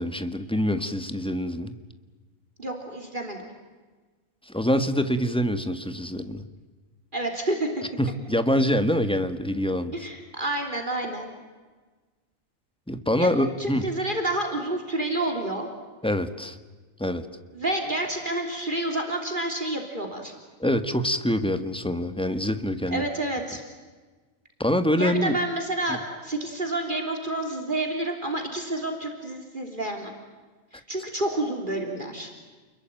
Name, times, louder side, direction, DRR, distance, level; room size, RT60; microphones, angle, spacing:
voice 1, 0.0-1.7 4.5-6.4 8.0-10.1 12.9-13.9 16.0-16.6 17.0-17.3 20.6-23.1 24.6-25.4 25.9-26.0, equal, 5° left, 9 dB, 1.5 m, -25 dB
voice 2, 2.6-3.5 7.1-7.8 9.9-11.3 13.2-13.3 13.6-15.7 17.5-20.3 22.9-23.6 25.0-30.1 30.7-32.3, right 1 dB, 40° right, 3 dB, 3.6 m, -29 dB
29.5 x 22.0 x 9.1 m, 1.3 s
omnidirectional pair, 1.4 m